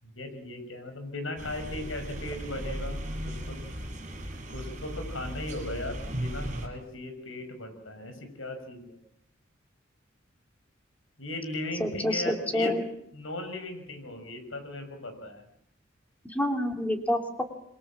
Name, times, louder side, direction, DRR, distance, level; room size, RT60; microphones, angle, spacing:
voice 1, 0.0-3.0 3.2-3.6 4.5-9.0 11.2-12.7 13.1-15.4, left 2 dB, 75° left, 7 dB, 6.2 m, -37 dB
sound 1, 1.4-6.7, equal, 40° right, 7.2 m, -36 dB
voice 2, 11.8-12.8 16.3-17.4, left 1 dB, 10° left, 4 dB, 3.0 m, -28 dB
28.0 x 23.0 x 7.5 m, 0.73 s
head